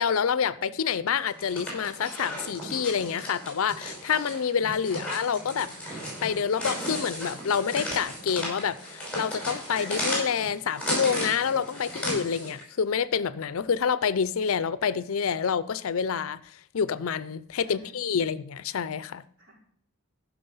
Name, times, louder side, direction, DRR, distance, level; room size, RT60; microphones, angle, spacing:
voice 1, 0.0-5.7 6.2-16.4 16.7-19.2, left 7 dB, 70° left, 0.5 m, -27 dB
sound 1, 1.3-12.6, equal, 5° left, 5.6 m, -35 dB
voice 2, 4.9-5.6 17.6-18.1 19.4-19.6, left 2 dB, 60° right, 4.9 m, -51 dB
14.5 x 6.1 x 5.5 m
head